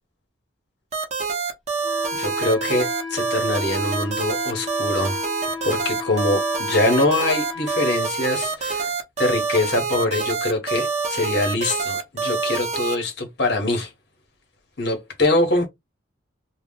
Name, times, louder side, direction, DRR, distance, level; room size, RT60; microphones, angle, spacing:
sound 1, 0.9-13.0, right 5 dB, 35° right, 0.6 m, -26 dB
Wind instrument woodwind instrument, 1.8-8.0, left 5 dB, ahead, 0.8 m, -34 dB
voice 1, 2.1-5.2 5.6-8.9 9.2-13.9 14.8-15.7, left 2 dB, 55° left, 1.1 m, -23 dB
2.4 x 2.1 x 3.6 m
head